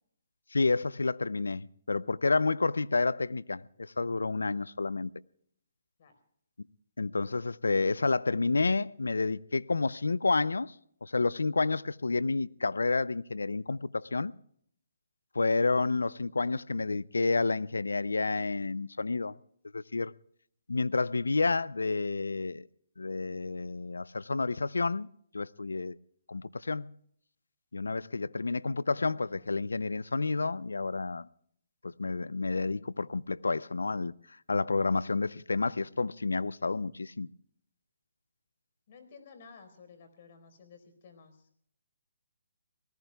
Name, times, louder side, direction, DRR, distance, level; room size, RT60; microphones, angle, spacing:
voice 1, 0.5-5.1 7.0-10.7 11.0-14.3 15.3-19.3 19.7-20.1 20.7-22.7 23.0-25.1 25.3-26.0 26.3-26.9 27.7-31.3 31.8-34.1 34.5-37.3, left 3 dB, 90° left, 0.5 m, -30 dB
voice 2, 28.9-29.6 38.9-41.5, left 5 dB, 50° left, 4.3 m, -54 dB
25.5 x 19.0 x 2.3 m
hypercardioid pair, 150°, 0 cm